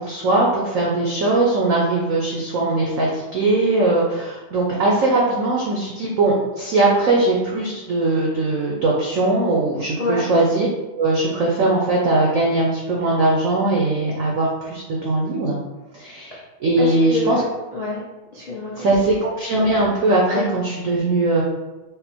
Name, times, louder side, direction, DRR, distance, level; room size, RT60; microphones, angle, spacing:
voice 1, 0.0-10.7 11.0-15.6 15.9-17.4 18.7-21.4, right 2 dB, 90° right, -3 dB, 0.7 m, -20 dB
voice 2, 16.8-18.0 18.3-18.8 20.3-20.6, left 2 dB, 80° left, -6 dB, 0.3 m, -27 dB
5.2 x 2.0 x 4.3 m, 1.1 s
omnidirectional pair, 2.4 m